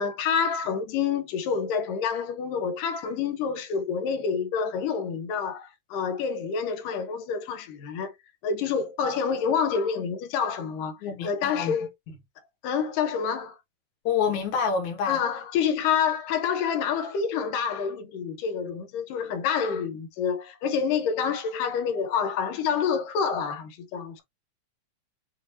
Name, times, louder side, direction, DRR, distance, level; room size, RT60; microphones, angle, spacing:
voice 1, 0.0-8.1 8.4-11.9 12.6-13.6 15.1-24.2, left 6 dB, 80° left, 2.5 m, -28 dB
voice 2, 11.0-11.7 14.0-15.2, left 6 dB, 65° left, 2.7 m, -27 dB
7.0 x 2.7 x 2.8 m
omnidirectional pair, 3.7 m